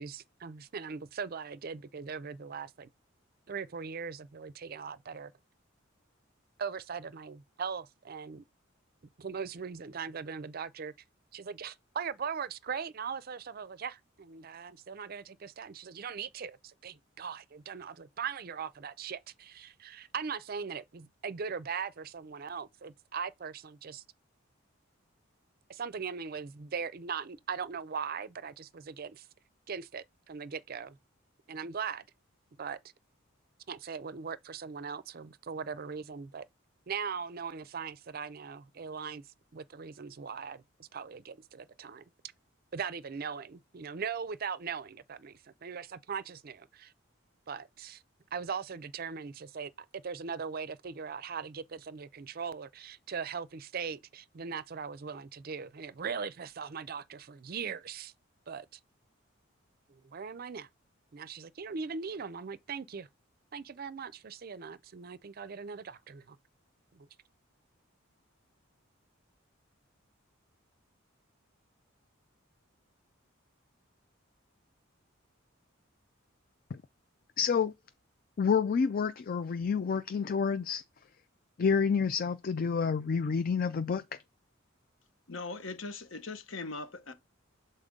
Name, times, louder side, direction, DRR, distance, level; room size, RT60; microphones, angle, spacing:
voice 1, 0.0-2.9 3.5-5.3 6.6-8.4 9.2-10.9 11.3-24.0 25.7-29.3 29.7-31.0 31.5-32.0 32.6-32.8 33.7-36.5 36.9-39.2 39.5-42.0 42.7-46.9 47.5-48.0 48.3-58.1 58.5-58.8 59.9-60.7 61.1-63.1 63.5-66.4 66.9-67.1, right 6 dB, 45° right, 0.5 m, -40 dB
voice 2, 77.4-77.7 78.4-80.8 81.6-84.0, left 6 dB, 45° left, 0.4 m, -28 dB
voice 3, 85.3-87.1, left 3 dB, 70° left, 1.0 m, -40 dB
6.6 x 4.2 x 3.6 m
head